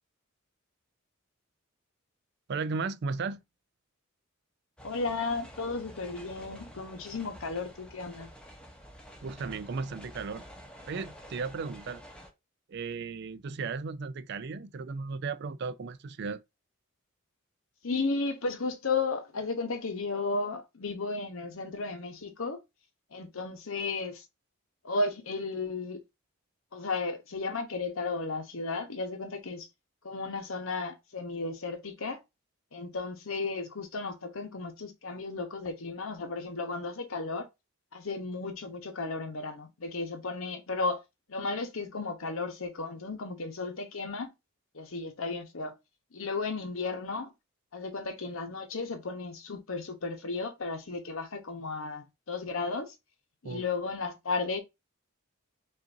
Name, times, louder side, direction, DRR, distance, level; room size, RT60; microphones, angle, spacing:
voice 1, 2.5-3.4 9.2-10.4 10.9-12.0 12.7-16.4 53.4-53.7, right 4 dB, 50° right, 0.4 m, -35 dB
voice 2, 4.8-8.3 17.8-22.6 23.1-24.2 24.8-26.0 26.7-29.7 30.0-32.2 32.7-37.5 37.9-41.0 41.3-44.3 44.7-45.7 46.1-47.3 47.7-52.9 53.4-54.6, left 3 dB, 70° left, 0.9 m, -34 dB
sound 1, 4.8-12.3, equal, 5° left, 0.7 m, -49 dB
5.6 x 2.6 x 2.5 m
head